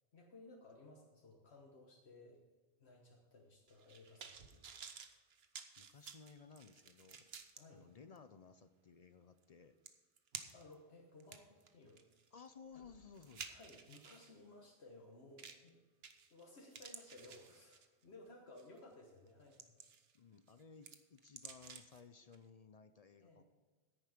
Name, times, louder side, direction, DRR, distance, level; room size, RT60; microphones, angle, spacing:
voice 1, 0.1-2.4 2.8-4.6 7.5-7.8 10.5-12.2 12.7-12.8 13.5-15.8 16.3-19.8 23.2-23.4, left 2 dB, 70° left, -1 dB, 1.5 m, -59 dB
sound 1, 3.7-7.6 8.2-8.3 9.4-9.5 9.9-10.7 11.2-14.3 15.4-15.7 16.0-16.4 16.7-18.0 18.6-18.8 19.3-20.2 20.5-22.0 22.3-22.4, right 6 dB, 65° right, 1.1 m, -53 dB
voice 2, 5.8-7.3 7.7-9.8 12.3-13.5 20.1-23.4, left 5 dB, 50° left, 11 dB, 0.5 m, -58 dB
10.5 x 9.4 x 5.0 m, 1.4 s
omnidirectional pair, 1.1 m